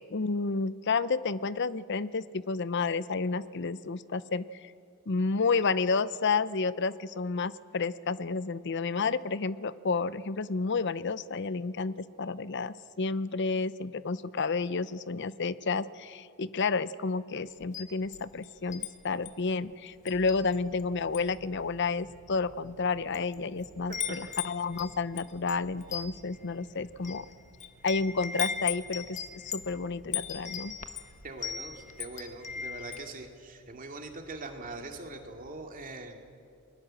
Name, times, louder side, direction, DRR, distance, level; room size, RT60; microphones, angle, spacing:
voice 1, 0.1-4.7 5.1-27.3 27.8-30.8, left 4 dB, 55° left, 16 dB, 0.7 m, -31 dB
Wind chime, 17.6-18.9 19.3-19.5 20.1-20.8 21.1-21.4 22.1-22.2 22.9-23.3 23.6-33.1, left 7 dB, 35° left, 1.1 m, -38 dB
sound 1, 20.1-35.6, right 2 dB, 80° left, 4.6 m, -58 dB
voice 2, 31.2-36.2, right 2 dB, 40° right, 4 dB, 2.5 m, -42 dB
29.0 x 21.0 x 7.6 m, 2.4 s
head